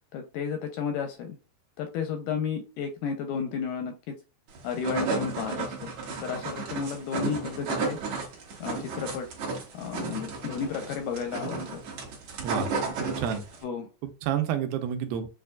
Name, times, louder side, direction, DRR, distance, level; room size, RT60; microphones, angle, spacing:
voice 1, 0.1-1.4 1.8-4.1 4.6-5.9 6.2-8.0 8.6-9.3 9.7-11.8 13.6-13.9, left 6 dB, 80° left, 5 dB, 1.9 m, -32 dB
sound 1, 4.5-13.6, right 4 dB, 60° right, 2.2 m, -33 dB
voice 2, 13.0-13.4 14.0-15.3, right 8 dB, 90° right, 7 dB, 2.5 m, -29 dB
7.2 x 2.5 x 2.2 m, 0.33 s
omnidirectional pair, 4.1 m